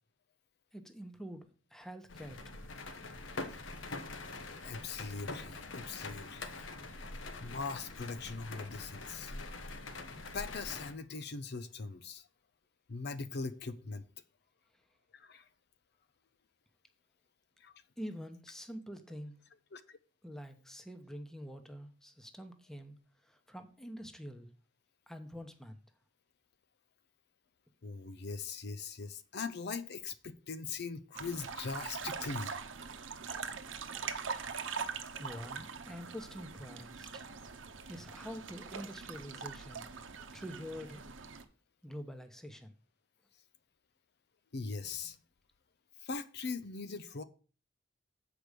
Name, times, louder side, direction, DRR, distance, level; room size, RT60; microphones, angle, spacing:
voice 1, 0.7-2.6 18.0-19.3 20.2-23.0 23.2-24.5 25.1-25.8 35.2-37.2 37.9-39.8 40.3-41.3 41.8-42.7, equal, 5° left, 0.9 m, -46 dB
sound 1, 2.1-10.9, left 3 dB, 85° left, 1.1 m, -44 dB
voice 2, 4.6-6.5 7.4-9.3 10.1-12.3 12.9-14.0 15.1-15.5 17.6-17.7 19.7-20.0 27.8-32.6 44.5-45.2 46.0-47.2, left 4 dB, 60° left, 0.6 m, -41 dB
sound 2, 31.1-41.4, right 5 dB, 85° right, 0.9 m, -42 dB
7.6 x 4.9 x 6.7 m
head